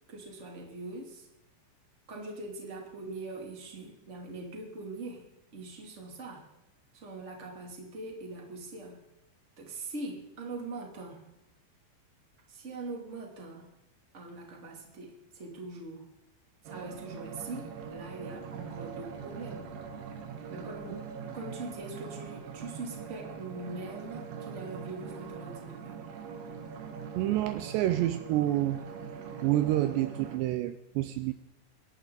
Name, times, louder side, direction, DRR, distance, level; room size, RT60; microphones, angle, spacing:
voice 1, 0.1-1.3 2.1-5.3 5.5-6.4 6.9-9.0 9.6-11.2 12.5-13.7 14.1-16.1 16.6-19.7 20.5-21.0 21.3-26.0, right 2 dB, 20° right, 0 dB, 2.0 m, -42 dB
sound 1, 16.7-30.4, right 6 dB, 65° right, 3.3 m, -42 dB
Bowed string instrument, 17.3-20.5, left 2 dB, 15° left, 2.2 m, -59 dB
voice 2, 27.2-28.9 29.4-31.3, right 14 dB, 90° right, 10 dB, 2.5 m, -28 dB
27.0 x 11.5 x 4.0 m, 0.94 s
omnidirectional pair, 5.7 m